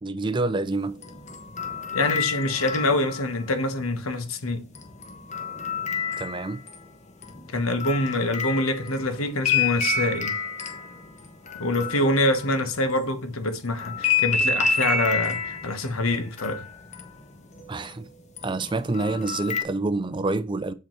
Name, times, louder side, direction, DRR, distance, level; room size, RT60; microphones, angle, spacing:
voice 1, 0.0-1.0 6.2-6.6 17.7-18.1 18.4-20.7, right 2 dB, 20° right, 0.4 m, -27 dB
sound 1, 0.9-3.5 4.7-6.9 7.2-13.1 13.8-17.9 18.4-19.6, left 5 dB, 35° left, 1.1 m, -29 dB
voice 2, 1.9-4.6 7.5-10.3 11.5-16.6, left 2 dB, 80° left, 1.2 m, -25 dB
7.6 x 5.2 x 4.4 m
head